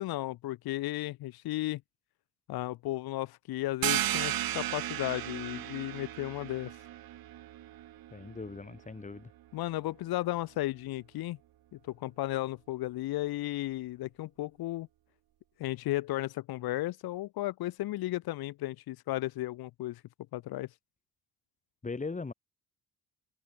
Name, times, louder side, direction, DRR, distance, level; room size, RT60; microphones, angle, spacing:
voice 1, 0.0-1.8 2.5-6.7 9.5-11.4 11.7-14.9 15.6-20.0 20.3-20.7, left 16 dB, 85° left, 1.5 m, -34 dB
sound 1, 3.8-9.2, right 13 dB, 75° right, 3.7 m, -35 dB
voice 2, 8.1-9.3 21.8-22.3, left 4 dB, 20° left, 3.0 m, -39 dB
cardioid pair, 120°, 36 cm